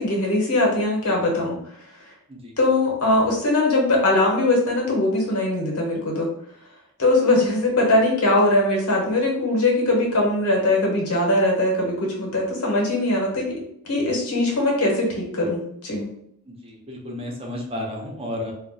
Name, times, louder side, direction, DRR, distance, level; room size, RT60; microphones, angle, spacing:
voice 1, 0.0-1.6 2.6-6.3 7.0-13.5 13.8-16.1, left 2 dB, 85° left, -1 dB, 1.0 m, -21 dB
voice 2, 16.5-18.5, left 1 dB, 25° right, -1 dB, 0.6 m, -32 dB
2.4 x 2.1 x 3.9 m, 0.72 s
head